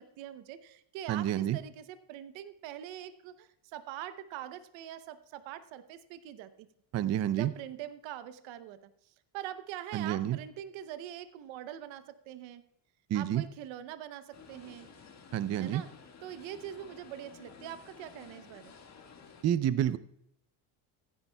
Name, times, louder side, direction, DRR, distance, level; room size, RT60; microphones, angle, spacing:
voice 1, 0.0-6.7 7.3-12.6 13.1-14.9 15.6-15.9 16.2-18.8, right 11 dB, 65° right, 13 dB, 0.9 m, -43 dB
voice 2, 1.1-1.6 6.9-7.5 9.9-10.4 13.1-13.4 15.3-15.8 19.4-20.0, right 11 dB, 35° right, 16 dB, 0.5 m, -29 dB
sound 1, 14.3-19.4, left 5 dB, 35° left, 1.7 m, -53 dB
15.0 x 10.0 x 2.3 m, 0.76 s
supercardioid pair, 90°, 50 cm